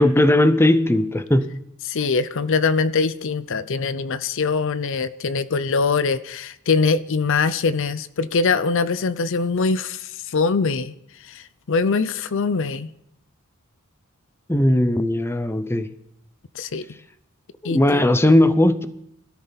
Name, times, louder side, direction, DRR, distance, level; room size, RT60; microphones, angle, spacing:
voice 1, 0.0-1.5 14.5-15.9 17.6-18.9, left 1 dB, 10° left, 0.7 m, -17 dB
voice 2, 1.8-10.9 11.2-12.9 16.5-16.9 17.6-18.1, left 4 dB, 65° left, 0.6 m, -23 dB
21.5 x 13.0 x 4.1 m
head